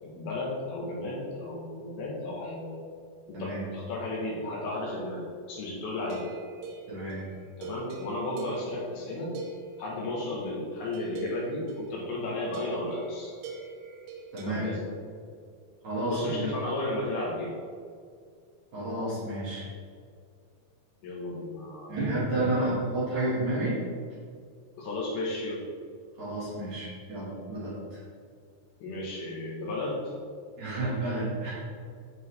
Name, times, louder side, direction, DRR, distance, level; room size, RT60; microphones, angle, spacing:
voice 1, 0.0-2.7 3.3-6.3 7.6-9.3 9.8-13.3 14.4-14.8 16.1-17.5 21.0-22.0 22.3-22.7 24.8-25.6 28.8-30.1, left 2 dB, 70° left, -4 dB, 2.7 m, -34 dB
voice 2, 3.3-3.6 6.9-7.2 14.3-14.7 15.8-16.5 18.7-19.6 21.9-23.8 26.2-28.0 30.6-31.5, right 2 dB, 55° right, -9 dB, 2.4 m, -30 dB
sound 1, 6.0-10.4 10.9-14.5, right 5 dB, 80° right, 2.6 m, -43 dB
9.4 x 3.9 x 3.2 m, 2.1 s
omnidirectional pair, 4.8 m